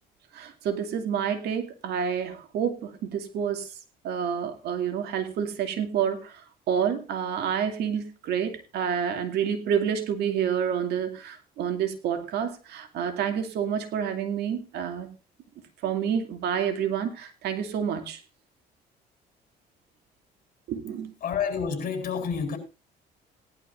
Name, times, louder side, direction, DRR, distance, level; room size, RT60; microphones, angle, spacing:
voice 1, 0.3-3.8 4.0-15.1 15.8-18.2 20.7-21.1, right 8 dB, 75° right, 2.5 m, -29 dB
voice 2, 21.2-22.6, left 6 dB, 55° left, 4.5 m, -29 dB
18.0 x 11.5 x 2.5 m
cardioid pair, 110°, 17 cm